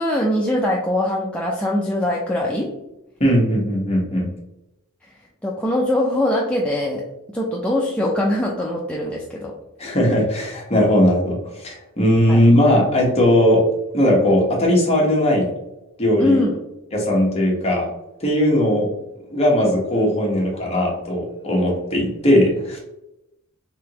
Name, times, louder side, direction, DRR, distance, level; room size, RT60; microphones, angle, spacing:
voice 1, 0.0-2.8 5.0-5.1 5.4-7.1 7.3-9.6 12.3-12.4 16.2-16.6, left 1 dB, 5° left, -3 dB, 0.4 m, -22 dB
voice 2, 3.2-4.3 9.8-13.6 13.9-15.5 16.0-16.4 16.9-17.9 18.2-18.9 19.3-22.8, left 1 dB, 30° left, -2 dB, 1.0 m, -18 dB
3.6 x 3.5 x 2.9 m, 0.91 s
head